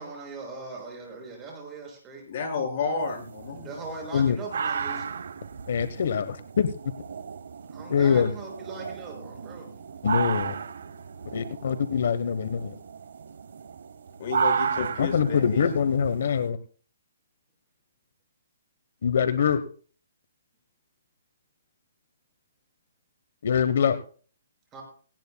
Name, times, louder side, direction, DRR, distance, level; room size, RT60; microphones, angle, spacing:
voice 1, 0.0-2.2 3.5-5.1 7.7-9.7 24.7-24.8, right 3 dB, 15° right, 0 dB, 6.1 m, -40 dB
voice 2, 2.3-3.7 14.2-15.6, left 5 dB, 40° left, 1 dB, 5.6 m, -31 dB
sound 1, 3.0-16.5, right 6 dB, 70° right, 1.0 m, -34 dB
voice 3, 5.7-6.7 7.9-8.3 10.0-10.5 11.3-12.7 14.8-16.6 19.0-19.6 23.4-24.0, left 7 dB, 60° left, 11 dB, 1.0 m, -24 dB
18.0 x 18.0 x 2.3 m, 0.41 s
hypercardioid pair, 165°, 0 cm